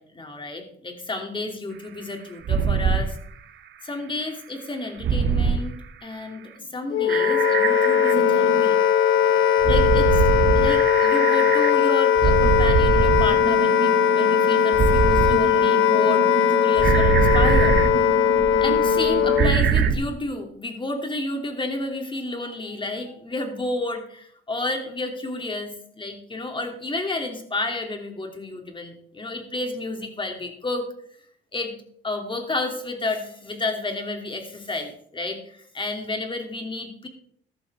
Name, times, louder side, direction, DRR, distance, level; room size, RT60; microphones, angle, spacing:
voice 1, 0.0-3.2 3.8-5.7 6.0-8.8 9.3-10.2 10.5-17.8 18.6-30.8 31.5-31.7 32.0-37.1, left 2 dB, 25° left, 3 dB, 3.0 m, -31 dB
sound 1, 2.5-3.1 5.0-5.6 7.1-8.6 9.6-11.7 12.2-19.9, right 6 dB, 65° right, 1.5 m, -23 dB
Wind instrument woodwind instrument, 6.9-19.6, left 9 dB, 85° left, 1.1 m, -19 dB
14.0 x 12.0 x 3.7 m, 0.65 s
cardioid pair, 90°, 20 cm